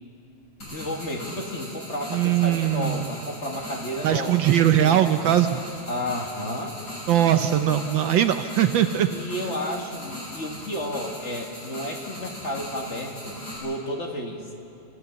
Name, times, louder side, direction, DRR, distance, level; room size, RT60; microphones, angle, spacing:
sound 1, 0.6-13.6, left 1 dB, 50° left, 7.3 m, -39 dB
voice 1, 0.7-4.4 4.8-5.1 5.9-6.8 9.1-14.5, left 1 dB, 35° left, 1 dB, 1.8 m, -32 dB
voice 2, 2.1-3.1 4.0-5.6 7.1-9.1, right 11 dB, 70° right, 8 dB, 1.3 m, -20 dB
26.5 x 15.0 x 7.0 m, 2.7 s
omnidirectional pair, 2.4 m